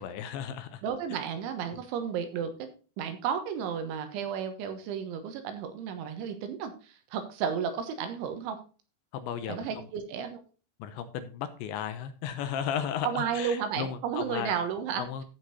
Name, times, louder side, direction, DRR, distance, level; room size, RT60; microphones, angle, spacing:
voice 1, 0.0-0.8 1.7-1.8 9.1-9.7 10.8-14.5 15.0-15.2, left 8 dB, 80° left, 10 dB, 2.9 m, -35 dB
voice 2, 0.8-2.7 3.0-8.6 9.5-10.4 13.0-15.2, right 7 dB, 80° right, 7 dB, 3.5 m, -33 dB
14.5 x 5.3 x 4.1 m, 0.35 s
omnidirectional pair, 5.6 m